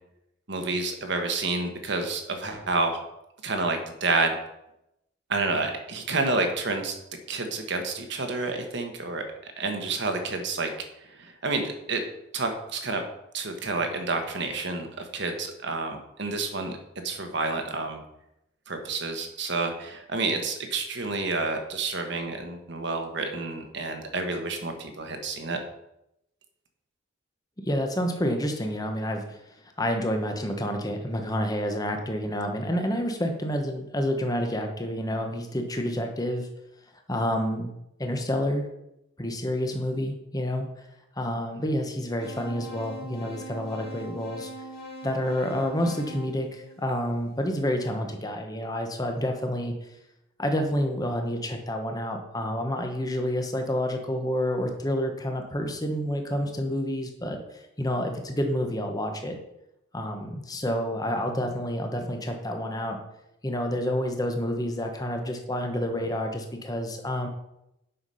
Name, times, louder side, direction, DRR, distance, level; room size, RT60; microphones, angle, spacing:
voice 1, 0.5-3.0 3.4-4.3 5.3-6.9 7.3-9.2 9.6-10.7 11.2-12.0 12.3-13.0 13.3-16.8 17.0-18.0 18.7-25.6, right 3 dB, 60° right, 5 dB, 1.3 m, -29 dB
voice 2, 27.6-29.4 29.8-36.5 37.1-37.7 38.0-38.7 39.2-40.7 41.2-44.5 45.0-49.7 50.4-59.4 59.9-63.0 63.4-67.3, equal, 20° left, 4 dB, 1.1 m, -29 dB
sound 1, 42.2-47.3, right 1 dB, 50° left, 2.2 m, -42 dB
7.8 x 5.9 x 5.6 m, 0.85 s
head